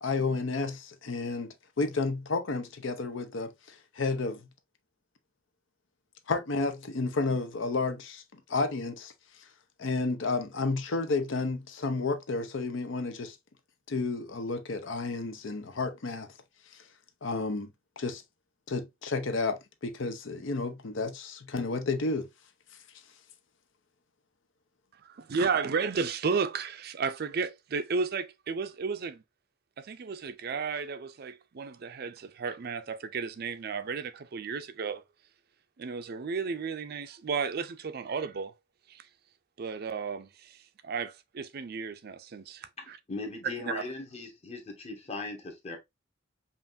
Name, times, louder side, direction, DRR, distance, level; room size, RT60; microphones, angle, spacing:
voice 1, 0.0-4.4 6.3-8.2 8.5-9.1 9.8-13.4 13.9-16.3 17.2-17.7 18.0-18.2 18.7-22.3, left 3 dB, 70° left, 0.6 m, -31 dB
voice 2, 25.0-29.2 29.8-35.0 35.8-38.5 38.9-39.0 39.6-40.6 40.8-43.0 43.7-43.8, right 5 dB, 55° right, 0.4 m, -33 dB
voice 3, 43.1-45.8, left 3 dB, 35° left, 1.1 m, -38 dB
5.5 x 2.5 x 2.5 m
head